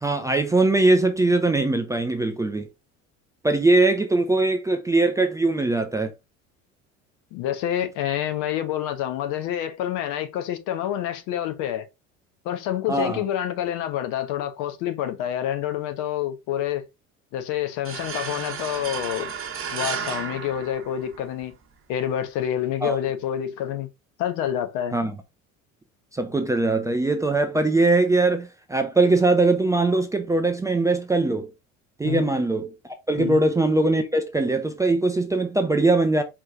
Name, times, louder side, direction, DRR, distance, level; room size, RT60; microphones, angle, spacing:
voice 1, 0.0-2.7 3.4-6.1 12.9-13.2 22.8-23.0 24.9-25.1 26.1-31.5 32.0-32.7 33.1-36.2, right 2 dB, 10° right, 0.5 m, -21 dB
voice 2, 7.3-11.9 12.4-16.9 17.3-19.3 19.7-21.5 21.9-23.9 24.2-24.9 32.0-32.3 33.2-33.4, left 11 dB, 50° left, 0.9 m, -27 dB
sound 1, 17.8-21.4, right 7 dB, 30° right, 1.0 m, -33 dB
4.7 x 2.9 x 3.5 m
figure-of-eight pair, 60°, 40 cm